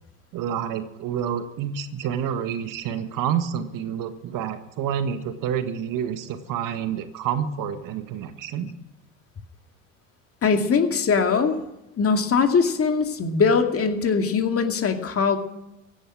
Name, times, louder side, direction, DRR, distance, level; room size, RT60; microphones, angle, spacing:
voice 1, 0.3-8.7, right 8 dB, 55° right, 10 dB, 1.6 m, -28 dB
voice 2, 10.4-11.6 12.0-15.4, left 5 dB, 35° left, 5 dB, 2.3 m, -21 dB
16.0 x 11.0 x 6.2 m, 0.92 s
hypercardioid pair, 75°, 39 cm